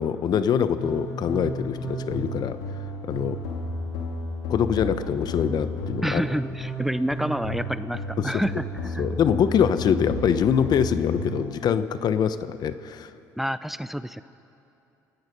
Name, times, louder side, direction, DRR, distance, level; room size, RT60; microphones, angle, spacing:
voice 1, 0.0-2.6 3.1-3.4 4.5-6.2 8.2-8.4 9.0-13.1, left 8 dB, 55° left, 12 dB, 1.0 m, -24 dB
sound 1, 0.8-11.4, left 1 dB, 85° left, 3.2 m, -33 dB
voice 2, 6.0-9.0 13.4-14.2, equal, 5° right, 14 dB, 0.6 m, -28 dB
29.0 x 16.5 x 5.4 m, 2.8 s
supercardioid pair, 70°, 8 cm